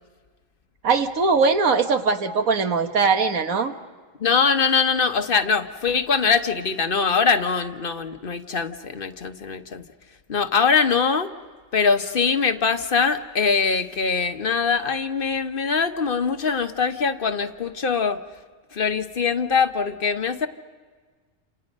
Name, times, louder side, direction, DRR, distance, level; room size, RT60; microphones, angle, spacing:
voice 1, 0.8-3.7, right 4 dB, 90° right, 7 dB, 1.8 m, -20 dB
voice 2, 4.2-9.8 10.3-11.3 11.7-18.2 18.7-20.5, left 5 dB, 45° left, 7 dB, 1.2 m, -22 dB
28.5 x 28.0 x 5.3 m, 1.5 s
omnidirectional pair, 1.4 m